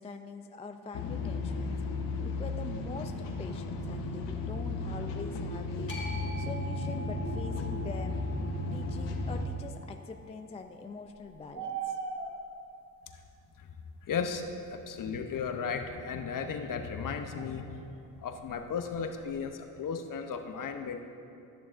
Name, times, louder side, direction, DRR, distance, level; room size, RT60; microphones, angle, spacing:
voice 1, 0.0-1.8 2.2-8.2 8.7-12.0 14.8-15.1, left 4 dB, 15° left, 6 dB, 0.3 m, -44 dB
sound 1, 0.9-9.5, left 2 dB, 85° left, 0.9 m, -34 dB
sound 2, 5.9-12.1, left 2 dB, 30° left, 2.0 m, -47 dB
sound 3, 11.1-12.7 15.1-15.2 17.3-17.7 18.1-18.2 18.4-19.4, right 6 dB, 45° right, 1.6 m, -38 dB
voice 2, 14.0-17.9 18.2-21.0, left 6 dB, 50° left, 6 dB, 0.8 m, -35 dB
13.5 x 6.8 x 2.5 m, 2.6 s
cardioid pair, 90°, 42 cm